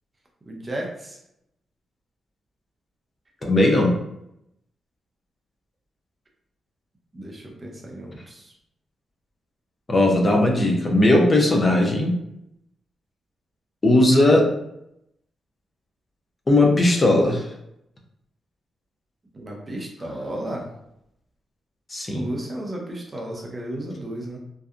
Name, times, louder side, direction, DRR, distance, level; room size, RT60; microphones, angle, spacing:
voice 1, 0.5-1.2 7.1-8.5 19.3-20.7 22.1-24.4, right 1 dB, 30° right, 0 dB, 0.5 m, -33 dB
voice 2, 3.4-3.9 9.9-12.2 13.8-14.5 16.5-17.5 21.9-22.2, left 1 dB, 30° left, 0 dB, 0.5 m, -18 dB
2.6 x 2.2 x 2.4 m, 0.79 s
cardioid pair, 95°, 0 cm